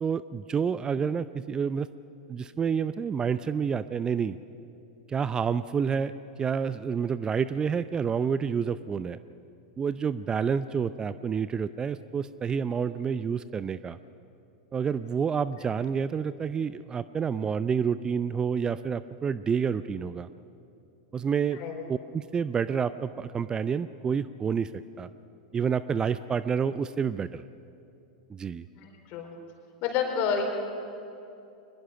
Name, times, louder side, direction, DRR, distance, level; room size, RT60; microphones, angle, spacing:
voice 1, 0.0-1.9 2.3-4.4 5.1-6.1 6.4-9.2 9.8-14.0 14.7-20.3 21.1-21.6 21.9-24.7 25.0-25.1 25.5-27.4 28.3-28.6, right 6 dB, 20° right, 15 dB, 0.5 m, -28 dB
voice 2, 21.5-21.8 28.8-29.3 29.8-30.4, left 7 dB, 45° left, 3 dB, 4.3 m, -29 dB
24.0 x 21.0 x 5.9 m, 2.7 s
hypercardioid pair, 95°, 4 cm